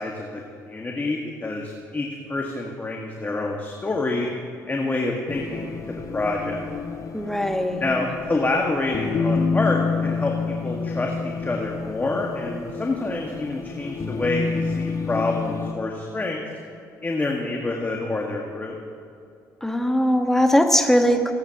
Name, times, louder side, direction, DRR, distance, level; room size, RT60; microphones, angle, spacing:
voice 1, 0.0-4.3 4.7-6.7 7.8-10.3 10.6-16.4 17.0-18.8, left 2 dB, 25° left, 0 dB, 1.7 m, -27 dB
sound 1, 5.3-15.7, left 4 dB, 45° left, 1.3 m, -29 dB
voice 2, 7.1-7.8 19.6-21.3, equal, 5° left, 5 dB, 1.4 m, -20 dB
21.5 x 10.5 x 2.9 m, 2.5 s
hypercardioid pair, 60°, 8 cm